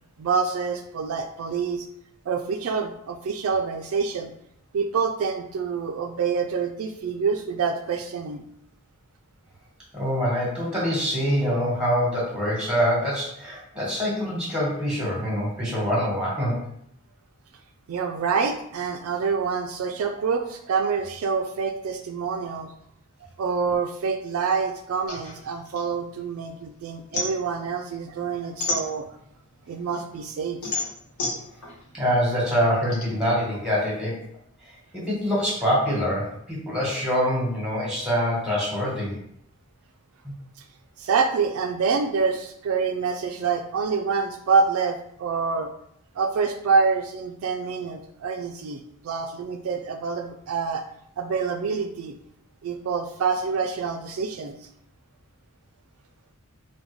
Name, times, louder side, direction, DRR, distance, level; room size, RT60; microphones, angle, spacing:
voice 1, 0.2-1.9 2.3-4.3 4.7-8.4 17.9-22.7 23.4-29.1 29.7-30.6 41.0-45.7 46.2-50.8 51.2-52.2 52.6-54.6, right 5 dB, 70° right, 5 dB, 0.3 m, -26 dB
voice 2, 9.9-16.6 31.9-34.2 34.6-39.2 40.2-40.3, equal, 5° right, -5 dB, 1.1 m, -25 dB
sound 1, 25.1-26.6 26.9-29.4 29.9-33.0, left 2 dB, 85° left, 0.9 m, -31 dB
3.5 x 2.2 x 3.1 m, 0.71 s
head